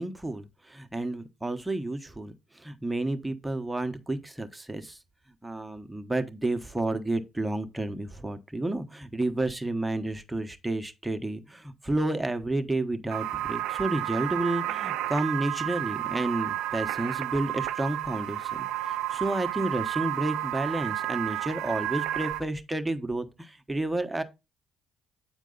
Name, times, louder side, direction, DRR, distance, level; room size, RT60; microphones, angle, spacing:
voice 1, 0.0-5.0 5.4-24.2, right 2 dB, 10° right, 1.0 m, -31 dB
sound 1, 13.1-22.4, right 12 dB, 85° right, 0.4 m, -31 dB
8.6 x 4.5 x 3.9 m
supercardioid pair, 65°, 0 cm